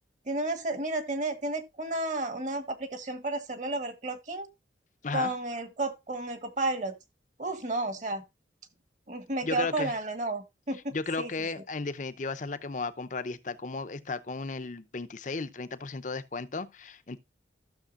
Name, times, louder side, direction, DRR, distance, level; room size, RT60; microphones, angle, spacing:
voice 1, 0.3-4.5 5.1-6.9 7.4-8.2 9.1-11.3, right 2 dB, 40° right, 1.3 m, -32 dB
voice 2, 9.4-9.9 10.9-17.2, left 3 dB, 45° left, 0.7 m, -34 dB
14.0 x 6.6 x 2.4 m
head